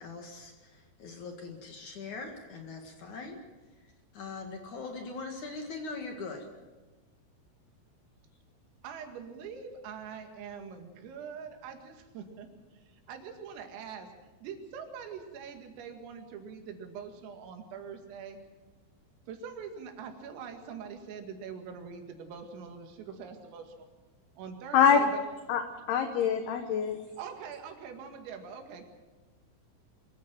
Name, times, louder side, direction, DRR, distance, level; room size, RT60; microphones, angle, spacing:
voice 1, 0.0-3.4 4.1-6.5, left 3 dB, 55° left, 4 dB, 2.3 m, -41 dB
voice 2, 8.8-12.5 12.7-14.1 14.4-18.4 19.3-23.9 24.4-25.2 27.2-28.9, right 6 dB, 80° right, 4 dB, 4.8 m, -43 dB
voice 3, 25.9-27.0, left 7 dB, 70° left, 6 dB, 2.5 m, -24 dB
24.5 x 15.0 x 7.7 m, 1.2 s
omnidirectional pair, 6.0 m